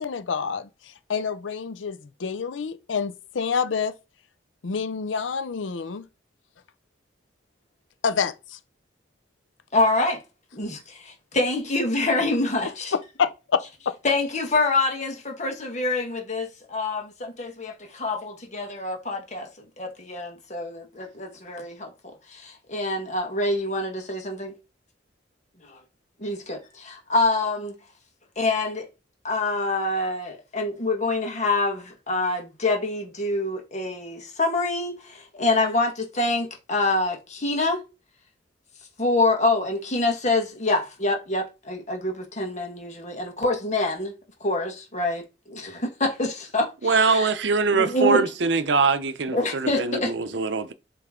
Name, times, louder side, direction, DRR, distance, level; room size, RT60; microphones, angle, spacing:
voice 1, 0.0-4.0 4.6-6.1 8.0-8.6 12.9-14.0, left 6 dB, 90° left, 0.5 m, -28 dB
voice 2, 9.7-10.2 10.5-12.9 14.0-19.5 19.8-24.6 25.6-25.8 26.2-27.7 28.4-28.9 29.2-37.8 39.0-44.1 44.4-47.3 47.7-48.2 49.3-50.1, left 2 dB, 40° left, 1.6 m, -26 dB
voice 3, 46.8-50.7, right 4 dB, 70° right, 0.7 m, -23 dB
7.7 x 3.2 x 3.7 m
head